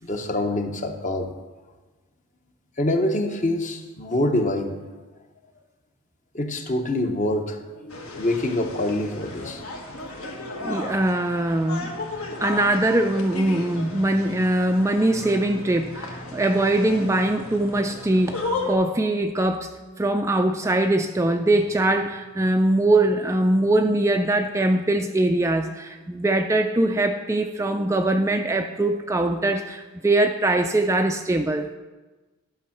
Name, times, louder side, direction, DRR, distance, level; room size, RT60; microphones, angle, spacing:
voice 1, 0.0-1.3 2.8-4.8 6.3-9.7 12.3-12.4 16.3-16.4, left 1 dB, 35° left, 5 dB, 0.9 m, -25 dB
sound 1, 7.9-18.7, left 2 dB, 70° left, 1.6 m, -34 dB
voice 2, 10.6-11.9 12.2-19.7 20.0-31.7, right 1 dB, 15° right, 5 dB, 0.3 m, -22 dB
11.5 x 6.3 x 5.8 m, 1.2 s
head